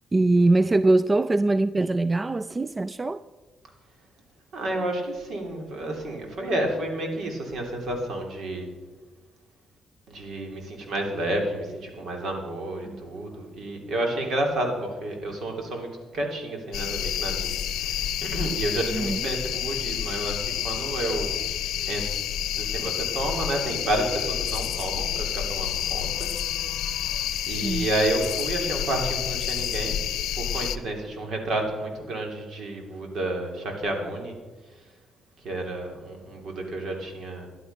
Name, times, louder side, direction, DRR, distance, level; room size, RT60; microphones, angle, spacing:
voice 1, 0.1-3.2 12.9-13.0 18.9-19.2 27.6-27.9, right 2 dB, 25° right, 0.3 m, -22 dB
voice 2, 4.5-8.7 10.1-21.3 21.9-22.1 22.5-26.3 26.8-26.9 27.5-30.0 30.3-34.4 35.4-37.5, right 1 dB, 65° right, 3.0 m, -30 dB
sound 1, 16.7-30.8, left 10 dB, 85° left, 0.7 m, -29 dB
12.0 x 11.5 x 5.5 m
cardioid pair, 90°, 0 cm